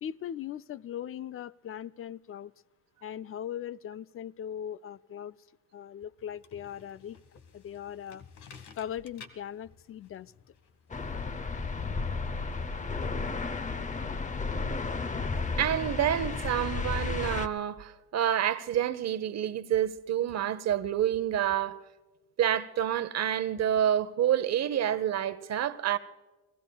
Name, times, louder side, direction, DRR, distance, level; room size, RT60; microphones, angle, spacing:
voice 1, 0.0-2.5 3.0-5.4 5.7-7.2 7.5-8.3 8.8-10.3, left 10 dB, 45° left, 0.4 m, -39 dB
sound 1, 6.2-11.6, left 6 dB, 75° left, 1.5 m, -54 dB
sound 2, 10.9-17.5, left 4 dB, 25° left, 0.7 m, -33 dB
voice 2, 15.6-21.8 22.4-26.0, right 10 dB, 60° right, 0.8 m, -28 dB
29.5 x 18.0 x 2.3 m
cardioid pair, 90°, 30 cm